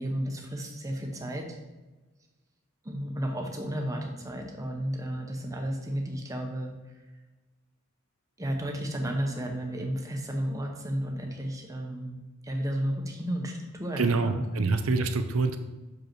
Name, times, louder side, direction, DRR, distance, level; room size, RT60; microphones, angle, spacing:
voice 1, 0.0-1.6 2.8-6.7 8.4-12.2 12.4-14.7, equal, 15° right, 2 dB, 0.9 m, -33 dB
voice 2, 14.0-15.6, right 3 dB, 85° right, 9 dB, 0.6 m, -26 dB
6.5 x 5.2 x 4.5 m, 1.2 s
head